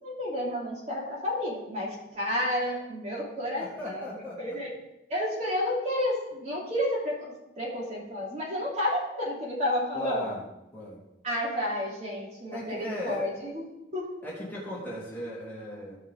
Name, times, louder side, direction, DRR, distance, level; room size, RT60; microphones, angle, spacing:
voice 1, 0.0-4.1 4.4-4.7 5.1-10.3 11.2-13.6 13.9-14.0, left 1 dB, 40° right, -4 dB, 3.2 m, -31 dB
voice 2, 3.6-4.6 9.9-10.4 10.7-11.0 12.5-13.3 14.2-16.0, equal, 10° left, -8 dB, 3.2 m, -37 dB
16.0 x 5.8 x 3.8 m, 0.92 s
head